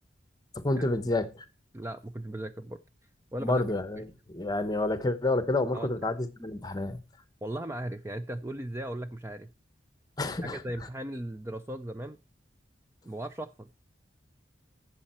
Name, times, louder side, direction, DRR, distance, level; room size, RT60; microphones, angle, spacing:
voice 1, 0.6-1.4 3.4-7.0 10.2-10.6, left 2 dB, 20° left, 0.9 m, -29 dB
voice 2, 1.7-2.8 3.3-3.6 4.0-4.1 5.7-5.9 7.4-9.5 10.4-12.2 13.0-13.7, right 1 dB, 15° right, 0.4 m, -37 dB
12.0 x 7.5 x 4.3 m
head